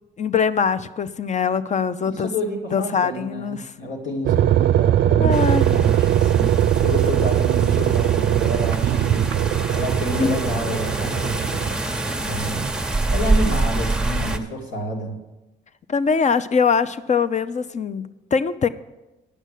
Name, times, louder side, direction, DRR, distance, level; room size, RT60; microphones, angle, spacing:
voice 1, 0.2-2.3 2.7-3.7 5.2-5.7 10.2-10.4 15.9-18.7, left 6 dB, 35° left, 14 dB, 0.6 m, -22 dB
voice 2, 2.0-6.5 6.8-9.3 9.7-11.4 12.2-12.7 13.1-15.2, left 1 dB, 70° left, 1 dB, 2.6 m, -29 dB
sound 1, 4.2-11.7, right 12 dB, 65° right, 0.4 m, -20 dB
sound 2, 5.3-14.4, right 2 dB, 5° right, 1.0 m, -26 dB
10.0 x 6.2 x 8.3 m, 1.0 s
cardioid pair, 90°, 20 cm